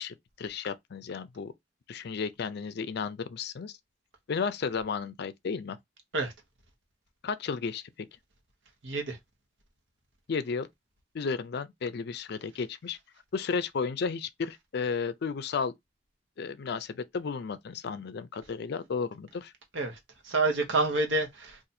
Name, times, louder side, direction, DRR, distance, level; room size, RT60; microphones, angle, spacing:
voice 1, 0.0-1.5 1.9-3.8 4.3-5.8 7.2-8.1 10.3-10.7 11.1-13.0 13.3-15.7 16.4-19.5, left 5 dB, 60° left, 0.4 m, -33 dB
voice 2, 8.8-9.2 19.7-20.0 20.2-21.7, right 2 dB, 75° right, 1.0 m, -28 dB
2.7 x 2.5 x 4.1 m
head